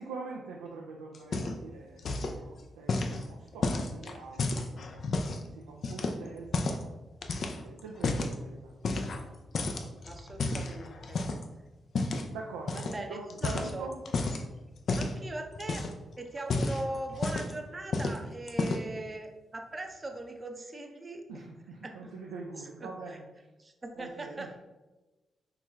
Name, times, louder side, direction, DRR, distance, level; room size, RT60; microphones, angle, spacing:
voice 1, 0.0-5.1 5.5-6.9 7.5-9.1 12.3-14.0 21.3-23.5 24.0-24.6, right 3 dB, 85° right, -1 dB, 0.3 m, -44 dB
sound 1, 1.1-1.7 2.0-2.4 2.9-5.4 5.8-6.9 7.2-8.4 8.8-9.3 9.5-11.4 11.9-12.3 12.7-13.0 13.3-14.4 14.9-15.2 15.6-16.0 16.4-17.6 17.9-18.2 18.5-19.0, left 3 dB, 60° left, 0.3 m, -31 dB
voice 2, 10.0-11.2 12.7-13.9 14.9-15.8 16.2-21.2 21.8-22.1 22.6-23.2 23.6-24.6, right 2 dB, 35° right, 3 dB, 0.6 m, -40 dB
4.6 x 3.0 x 2.3 m, 1.1 s
hypercardioid pair, 40°, 0 cm